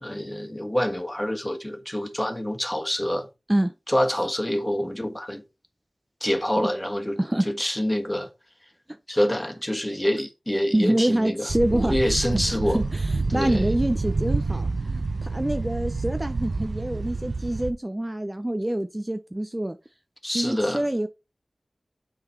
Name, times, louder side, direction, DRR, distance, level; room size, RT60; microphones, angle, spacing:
voice 1, 0.0-3.3 3.9-5.4 6.2-7.2 7.4-8.3 9.1-12.8 13.3-13.7 20.2-20.8, equal, 15° left, 1.5 m, -26 dB
voice 2, 10.7-12.0 12.7-19.8 20.3-21.1, right 1 dB, 20° right, 0.5 m, -26 dB
sound 1, 11.5-17.7, right 3 dB, 75° right, 0.6 m, -28 dB
6.8 x 3.9 x 4.6 m
cardioid pair, 40°, 0 cm